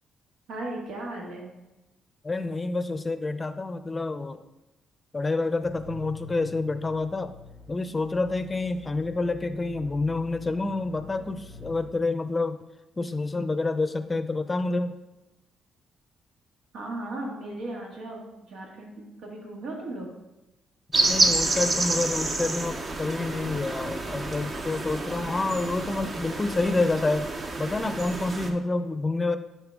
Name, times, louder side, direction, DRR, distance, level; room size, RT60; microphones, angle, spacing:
voice 1, 0.5-1.5 16.7-20.1, right 2 dB, 80° right, -1 dB, 1.9 m, -36 dB
voice 2, 2.2-4.4 5.1-7.3 7.7-12.6 13.0-14.9 21.1-27.3 27.6-29.4, left 3 dB, 25° left, 10 dB, 0.5 m, -28 dB
sound 1, 5.6-11.9, left 3 dB, 65° right, 1.1 m, -46 dB
sound 2, 20.9-28.5, right 2 dB, 40° right, 0.9 m, -28 dB
10.5 x 4.3 x 3.6 m, 1.0 s
cardioid pair, 90°, 0 cm